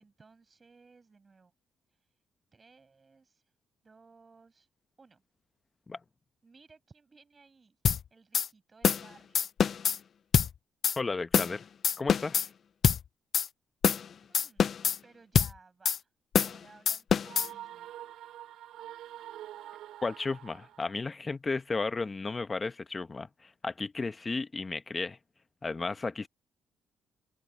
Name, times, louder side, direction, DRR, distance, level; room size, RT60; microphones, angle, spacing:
voice 1, 0.0-1.5 1.9-2.0 2.5-3.4 3.8-4.7 5.0-5.2 6.4-7.8 8.1-9.5 14.3-14.7 15.0-16.1 16.4-17.9, right 4 dB, 30° right, 7.7 m, -59 dB
sound 1, 7.9-8.0 8.3-8.5 8.8-9.1 9.4-10.0 10.3-10.5 10.8-11.0 11.3-11.6 11.8-12.5 12.8-13.0 13.3-13.5 13.8-14.1 14.3-15.0 15.4-15.5 15.9-16.0 16.3-16.6 16.9-17.5, left 7 dB, 55° left, 0.4 m, -25 dB
voice 2, 11.0-11.6 12.0-12.5 20.0-25.2 25.6-26.3, left 3 dB, 25° left, 1.0 m, -34 dB
sound 2, 17.2-21.1, right 12 dB, 85° right, 4.5 m, -46 dB
cardioid pair, 90°, 0 cm